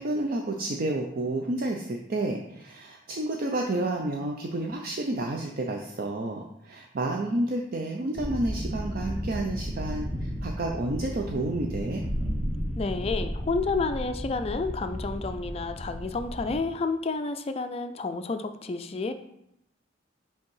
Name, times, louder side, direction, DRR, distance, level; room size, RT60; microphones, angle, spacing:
voice 1, 0.0-12.0, right 2 dB, 50° right, 2 dB, 0.5 m, -30 dB
sound 1, 8.2-16.6, equal, 10° right, 0.9 m, -33 dB
voice 2, 12.8-19.1, left 3 dB, 30° left, 9 dB, 0.4 m, -30 dB
5.3 x 3.5 x 5.5 m, 0.79 s
head